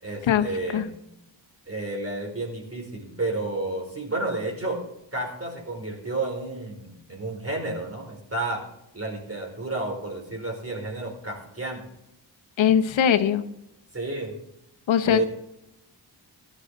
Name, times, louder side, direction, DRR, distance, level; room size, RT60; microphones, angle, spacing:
voice 1, 0.0-0.9 1.7-4.8 5.1-8.7 8.9-11.8 13.9-14.3 15.1-15.2, right 2 dB, 30° right, 1 dB, 4.8 m, -31 dB
voice 2, 12.6-13.4 14.9-15.2, left 9 dB, 90° left, 8 dB, 1.0 m, -20 dB
15.0 x 11.5 x 3.9 m, 0.84 s
cardioid pair, 65°, 45 cm